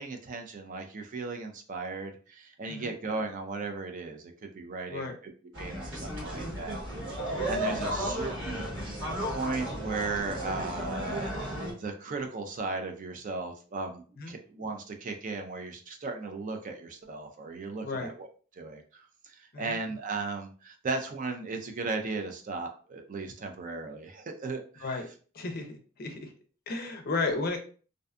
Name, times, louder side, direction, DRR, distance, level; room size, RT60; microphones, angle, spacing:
voice 1, 0.0-5.3 5.6-6.8 7.2-8.7 9.2-18.3 18.5-25.0, right 3 dB, 40° right, 5 dB, 0.4 m, -36 dB
sound 1, 5.5-11.7, equal, 60° right, 1.2 m, -34 dB
voice 2, 25.3-26.3 26.7-27.6, left 3 dB, 50° left, 5 dB, 0.5 m, -33 dB
2.5 x 2.2 x 2.4 m, 0.39 s
head